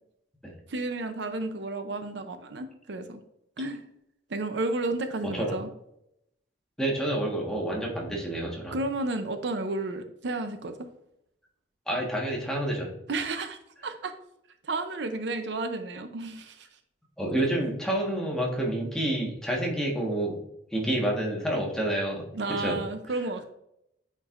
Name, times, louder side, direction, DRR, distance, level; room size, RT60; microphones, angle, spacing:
voice 1, 0.7-3.2 3.6-3.8 4.3-5.7 8.7-10.9 13.1-14.1 14.6-16.7 22.3-23.5, right 2 dB, 70° right, 8 dB, 0.6 m, -32 dB
voice 2, 5.2-5.6 6.8-8.8 11.9-12.9 17.2-20.4 20.7-22.2 22.6-22.8, right 1 dB, 5° left, -3 dB, 1.3 m, -28 dB
8.8 x 4.5 x 2.5 m, 0.79 s
head